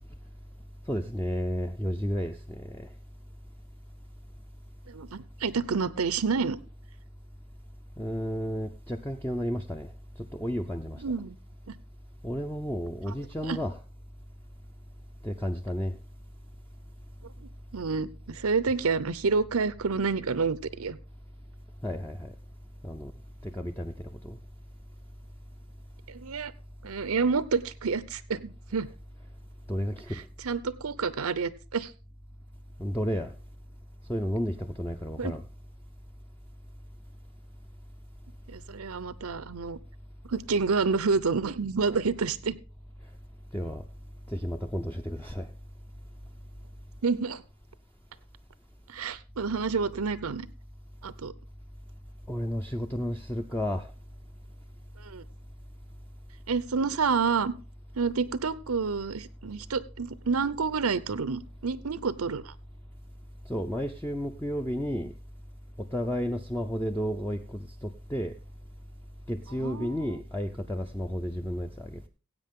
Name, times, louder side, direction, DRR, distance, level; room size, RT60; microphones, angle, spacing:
voice 1, 0.9-2.9 8.0-9.9 10.2-11.0 12.2-13.8 15.2-15.9 21.8-22.3 22.8-23.1 23.4-24.4 29.7-30.2 32.8-33.3 34.1-35.4 43.5-43.8 44.3-45.5 52.3-53.9 63.5-65.1 65.8-68.3 69.3-72.1, equal, 10° left, 4 dB, 0.5 m, -32 dB
voice 2, 4.9-6.6 11.0-11.4 13.1-13.2 13.4-13.6 17.4-21.0 26.1-26.5 26.8-28.9 30.1-31.9 35.2-35.3 38.5-39.8 40.2-42.5 47.0-47.4 48.9-50.5 51.0-51.3 55.0-55.2 56.5-57.5 57.9-62.5 69.6-70.2, right 5 dB, 85° right, 18 dB, 0.7 m, -29 dB
16.0 x 8.3 x 3.7 m, 0.33 s
head